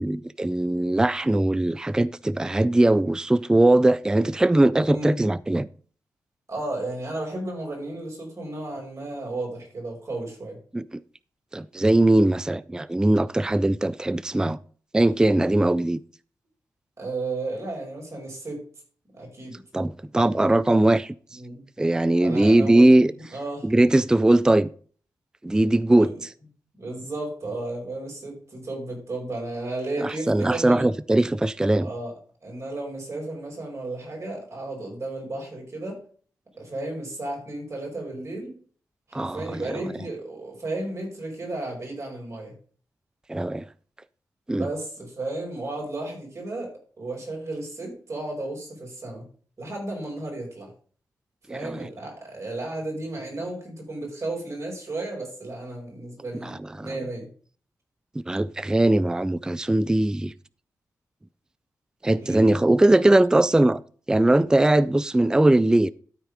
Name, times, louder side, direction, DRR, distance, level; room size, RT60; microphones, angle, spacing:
voice 1, 0.0-5.7 10.7-10.9 11.5-14.6 14.9-16.0 19.7-21.4 21.8-23.1 23.6-24.7 25.4-26.1 30.0-31.9 39.1-39.8 43.3-43.7 44.5-44.7 51.5-51.9 56.4-56.9 58.3-60.3 62.0-63.8 64.1-65.9, right 1 dB, 10° right, 0.3 m, -20 dB
voice 2, 6.5-10.6 17.0-18.6 19.1-19.6 21.3-21.6 22.2-22.9 23.3-23.7 25.9-26.2 26.8-30.9 31.8-32.1 32.4-36.0 36.6-38.6 39.1-42.5 44.5-49.2 49.6-50.7 51.5-57.3 62.2-62.5, right 2 dB, 45° right, 5.4 m, -33 dB
13.0 x 4.4 x 4.9 m
cardioid pair, 60°, 7 cm